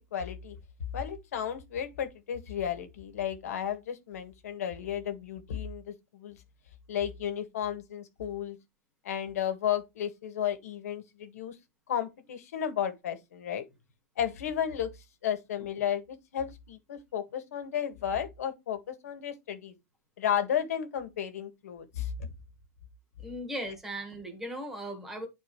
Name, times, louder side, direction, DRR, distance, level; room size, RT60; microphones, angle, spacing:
voice 1, 0.1-0.6 0.9-6.4 6.9-8.6 9.0-11.6 11.9-13.6 14.2-14.9 15.2-19.7 20.2-22.3, left 9 dB, 65° left, 1.6 m, -33 dB
voice 2, 23.2-25.3, equal, 5° right, 1.5 m, -37 dB
10.0 x 4.3 x 3.1 m
supercardioid pair, 175°, 9 cm